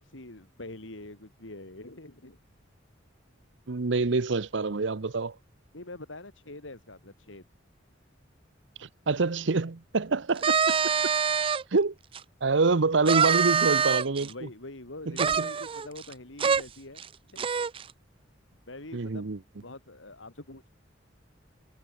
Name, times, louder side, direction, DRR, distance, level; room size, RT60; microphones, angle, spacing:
voice 1, 0.0-2.4 5.7-7.4 14.2-17.0 17.3-17.4 18.7-19.2 19.6-20.7, left 2 dB, 75° left, 3.4 m, -44 dB
voice 2, 3.7-5.3 8.8-10.6 11.7-11.9 12.4-14.3 15.1-15.5 18.9-19.4, right 3 dB, 70° right, 0.8 m, -26 dB
sound 1, 10.4-11.6 12.1-12.2 13.1-14.3 15.2-16.1 16.4-16.6 17.0-17.1 17.4-17.8, right 6 dB, 30° right, 0.4 m, -25 dB
head